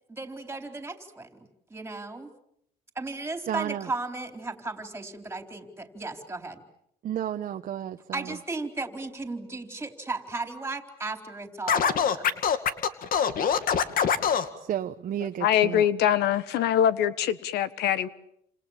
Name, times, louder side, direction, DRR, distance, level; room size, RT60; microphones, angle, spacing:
voice 1, 0.1-2.3 3.0-6.6 8.1-12.3, right 3 dB, 15° right, 4.2 m, -35 dB
voice 2, 3.5-3.9 7.0-8.4 14.6-15.8, right 10 dB, 50° right, 1.1 m, -32 dB
Scratching (performance technique), 11.7-14.5, left 7 dB, 60° left, 2.3 m, -23 dB
voice 3, 15.4-18.1, left 10 dB, 80° left, 1.4 m, -23 dB
29.5 x 27.0 x 7.5 m
cardioid pair, 110°, 17 cm